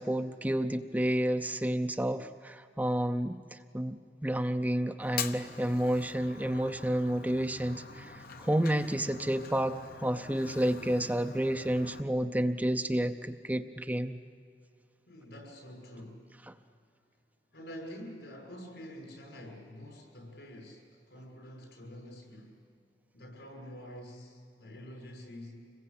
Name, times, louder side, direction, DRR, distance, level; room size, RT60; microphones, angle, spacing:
voice 1, 0.0-14.2, right 1 dB, 10° right, 7 dB, 0.6 m, -30 dB
Fire, 5.0-12.0, left 6 dB, 55° left, 0.9 m, -44 dB
voice 2, 15.1-16.3 17.5-22.6 23.1-25.7, equal, 75° left, 1 dB, 6.4 m, -47 dB
26.0 x 21.5 x 8.5 m, 2.4 s
head